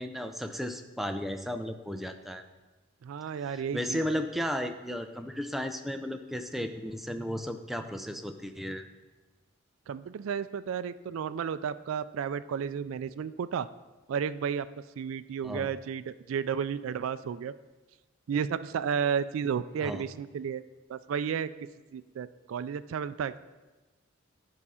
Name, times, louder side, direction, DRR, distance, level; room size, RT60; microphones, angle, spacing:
voice 1, 0.0-2.4 3.4-8.8 15.4-15.7 19.8-20.0, equal, ahead, 6 dB, 0.4 m, -34 dB
voice 2, 3.0-4.2 9.9-13.7 14.1-14.7 15.0-17.5 18.3-20.6 20.9-21.5 21.9-23.3, right 7 dB, 85° right, 13 dB, 0.3 m, -32 dB
11.0 x 4.8 x 5.6 m, 1.2 s
head